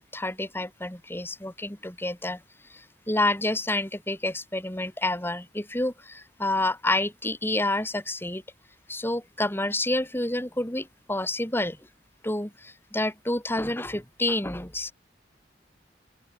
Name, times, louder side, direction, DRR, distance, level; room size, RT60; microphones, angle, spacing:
voice 1, 0.0-2.4 2.7-8.4 8.9-11.8 12.2-14.9, left 1 dB, 10° left, 3.7 m, -29 dB
open air
head